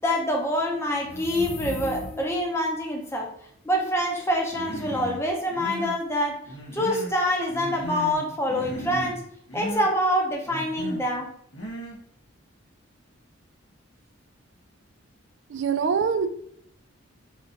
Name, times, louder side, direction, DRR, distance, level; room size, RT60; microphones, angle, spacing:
voice 1, 0.0-3.3 3.6-6.4 6.7-9.2 9.5-11.3, equal, 15° left, 0 dB, 0.7 m, -26 dB
sound 1, 1.0-2.5, left 2 dB, 55° left, 0.4 m, -35 dB
Human voice, 4.5-5.2 5.5-6.0 6.5-7.2 7.5-8.2 8.5-9.2 9.5-9.9 10.5-11.0 11.5-12.0, right 1 dB, 80° left, 1.3 m, -36 dB
voice 2, 15.5-16.3, right 6 dB, 60° right, 9 dB, 0.4 m, -24 dB
4.4 x 2.5 x 3.8 m, 0.68 s
head